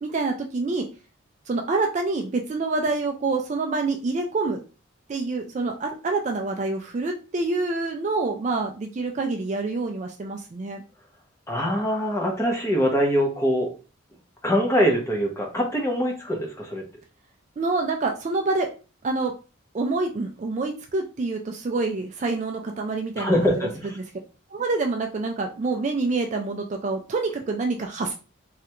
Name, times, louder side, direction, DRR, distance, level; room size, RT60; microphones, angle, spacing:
voice 1, 0.0-0.9 1.5-4.6 5.1-10.8 17.6-18.7 19.0-19.3 19.7-23.7 24.5-28.1, right 3 dB, 35° right, 3 dB, 0.3 m, -27 dB
voice 2, 11.5-13.7 14.4-16.8 23.2-24.0, equal, 15° left, 0 dB, 0.7 m, -23 dB
3.2 x 2.4 x 2.9 m, 0.34 s
head